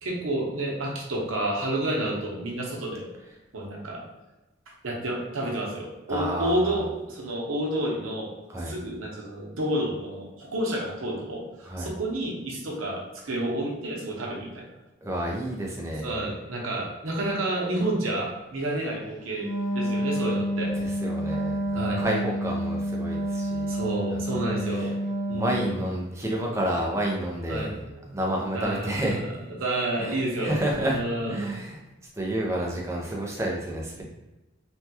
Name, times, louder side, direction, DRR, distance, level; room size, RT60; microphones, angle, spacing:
voice 1, 0.0-3.1 3.5-4.0 4.8-8.3 8.6-14.7 16.0-20.9 21.7-22.0 23.7-24.9 25.3-25.5 27.5-28.1 28.5-29.1 29.6-31.5 34.0-34.1, right 1 dB, 85° right, -1 dB, 0.8 m, -30 dB
voice 2, 6.1-6.8 8.5-8.7 11.7-11.9 15.0-16.1 20.8-23.7 24.1-24.2 24.8-24.9 25.3-27.7 28.1-29.2 30.0-31.0 31.3-31.8 32.2-34.0, right 1 dB, 15° right, -2 dB, 0.5 m, -30 dB
Wind instrument woodwind instrument, 19.3-25.8, right 1 dB, 40° right, 0.9 m, -29 dB
3.2 x 2.3 x 2.8 m, 1.1 s
head